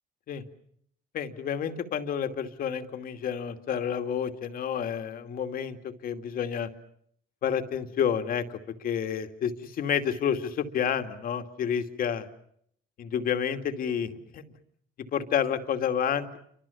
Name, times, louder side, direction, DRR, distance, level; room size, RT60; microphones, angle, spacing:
voice 1, 1.1-5.8 6.0-6.7 7.4-12.3 13.0-14.4 15.1-16.4, left 8 dB, 55° left, 7 dB, 2.5 m, -29 dB
29.5 x 25.5 x 7.1 m, 0.70 s
cardioid pair, 110°, 17 cm